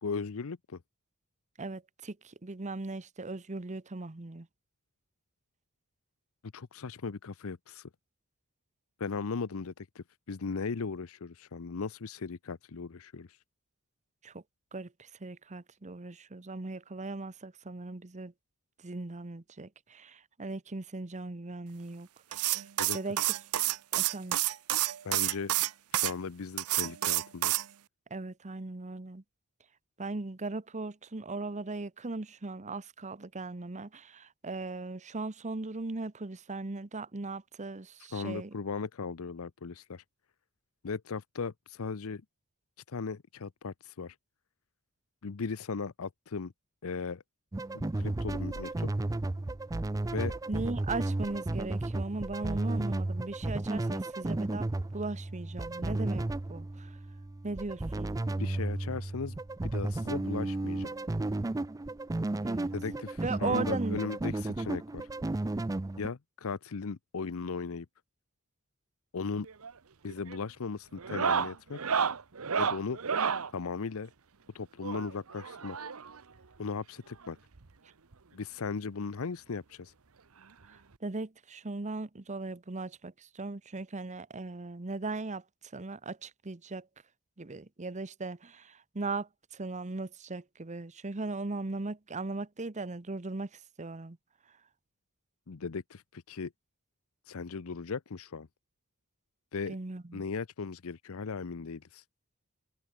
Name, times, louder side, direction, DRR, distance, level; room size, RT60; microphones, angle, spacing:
voice 1, 0.0-0.8 6.5-7.9 9.0-13.3 22.8-23.0 25.0-25.5 25.9-27.6 38.1-40.0 40.8-42.2 42.9-44.1 45.2-46.5 46.8-47.2 47.7-48.9 50.1-50.3 58.4-59.4 59.6-60.9 62.7-65.1 66.0-67.9 69.1-69.5 70.0-71.8 72.6-73.0 73.5-74.1 74.5-75.8 76.6-77.4 78.3-79.9 95.5-96.5 97.3-98.5 99.5-99.8 100.1-102.0, left 5 dB, 70° left, 0.7 m, -37 dB
voice 2, 1.6-4.5 14.2-14.4 14.7-18.3 18.8-22.6 22.9-23.2 24.0-24.4 28.1-29.2 30.0-38.5 50.5-54.7 54.9-56.2 56.5-56.9 57.4-58.2 62.4-62.7 63.2-64.1 81.0-85.4 85.7-86.9 87.4-93.5 93.8-94.2 99.7-100.2, right 3 dB, 35° right, 0.9 m, -38 dB
sound 1, 22.3-26.1 26.6-27.7, right 16 dB, 85° right, 0.6 m, -29 dB
sound 2, 47.5-66.1, right 2 dB, 15° right, 0.4 m, -33 dB
sound 3, 69.4-69.8 70.1-70.4 71.0-73.5 74.8-76.2 77.2-77.3 77.5-77.7 78.1-78.2 79.5-79.6 80.9-81.0, right 6 dB, 70° right, 1.0 m, -32 dB
head